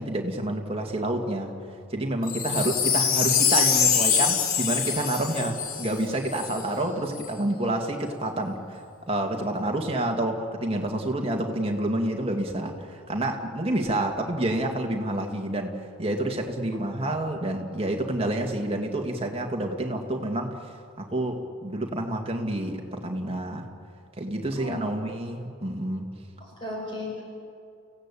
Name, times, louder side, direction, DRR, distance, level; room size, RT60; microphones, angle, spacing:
voice 1, 0.0-1.5 1.9-20.6 21.0-23.7 24.2-26.1, right 1 dB, 25° right, 2 dB, 2.1 m, -28 dB
Wind chime, 2.2-6.6 7.2-7.3, left 7 dB, 75° left, 2.6 m, -24 dB
voice 2, 26.4-27.2, left 2 dB, 20° left, -3 dB, 5.0 m, -36 dB
29.5 x 16.5 x 8.5 m, 2.5 s
head